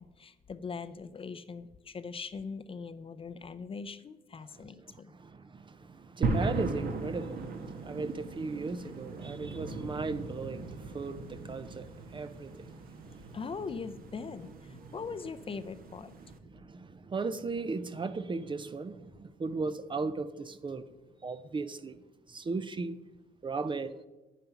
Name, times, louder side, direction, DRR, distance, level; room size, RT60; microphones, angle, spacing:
voice 1, 0.0-5.1 13.3-16.2, left 5 dB, 30° left, 0.6 m, -41 dB
voice 2, 4.6-13.4 16.4-20.8 21.2-22.0 22.3-23.0 23.4-23.9, right 4 dB, 30° right, 0.7 m, -37 dB
sound 1, 6.2-16.4, right 3 dB, 55° right, 1.4 m, -38 dB
9.3 x 9.3 x 5.8 m
cardioid pair, 95°, 18 cm